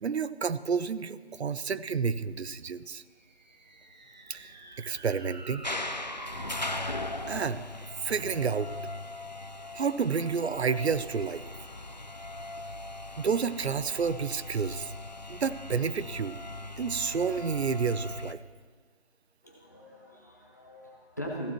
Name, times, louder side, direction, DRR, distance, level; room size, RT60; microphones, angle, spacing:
voice 1, 0.0-3.0 4.3-4.5 4.8-5.6 6.9-7.0 7.3-7.6 8.0-8.7 9.7-11.4 13.2-14.9 15.3-16.4 16.8-18.4, right 6 dB, 85° right, 15 dB, 0.6 m, -30 dB
sound 1, 3.2-7.6, right 2 dB, 45° right, 1.1 m, -45 dB
sound 2, 5.6-18.3, left 2 dB, 45° left, 0.4 m, -39 dB
voice 2, 19.4-21.5, equal, 15° left, -1 dB, 0.9 m, -41 dB
14.5 x 11.0 x 3.1 m, 1.5 s
figure-of-eight pair, 175°, 32 cm